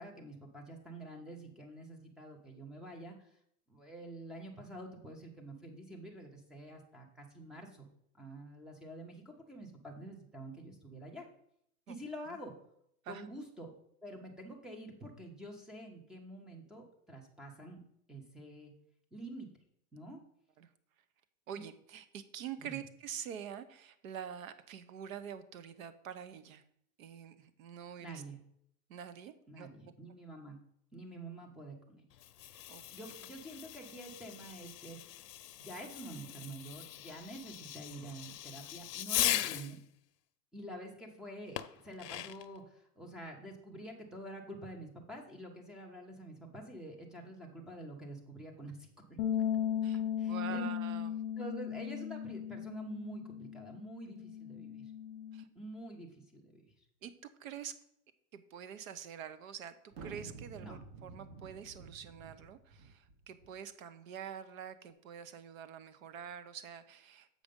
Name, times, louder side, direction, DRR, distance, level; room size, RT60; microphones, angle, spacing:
voice 1, 0.0-3.3 3.7-7.9 8.2-11.3 11.9-12.5 13.1-13.7 14.0-17.8 18.1-18.7 19.1-19.5 19.9-20.2 21.5-21.6 22.6-22.8 28.0-28.4 29.5-30.6 30.9-32.0 32.9-35.2 35.6-39.8 40.5-49.2 50.2-50.7 51.4-54.9 55.5-56.6 60.6-60.8, right 1 dB, ahead, 2 dB, 0.6 m, -47 dB
voice 2, 21.5-26.6 27.0-28.2 28.9-29.7 32.7-32.8 49.8-50.0 50.3-51.1 55.3-55.5 57.0-57.7 58.3-67.3, right 8 dB, 60° right, 13 dB, 0.9 m, -46 dB
Fireworks, 32.1-39.8 41.6-42.6, left 13 dB, 90° left, 0.7 m, -39 dB
sound 1, 49.2-55.4, left 9 dB, 20° left, 0.9 m, -37 dB
sound 2, 59.9-63.5, right 4 dB, 40° right, 1.6 m, -50 dB
7.7 x 5.1 x 5.2 m, 0.71 s
hypercardioid pair, 150°, 47 cm